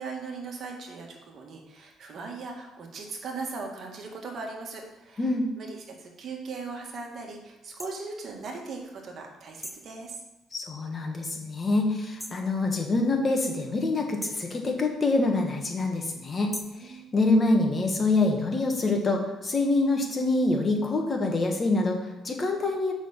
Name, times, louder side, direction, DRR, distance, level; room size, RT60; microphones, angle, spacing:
voice 1, 0.0-5.3 5.6-10.2 16.7-17.1, right 4 dB, 55° right, 1 dB, 1.9 m, -39 dB
sound 1, 7.8-7.9 9.6-9.9 12.2-12.5 14.2-14.5 16.5-16.8, equal, 5° right, 0.9 m, -39 dB
voice 2, 10.5-16.5 16.8-22.9, left 2 dB, 30° left, 3 dB, 1.4 m, -25 dB
6.0 x 5.9 x 7.1 m, 1.1 s
cardioid pair, 110°, 0 cm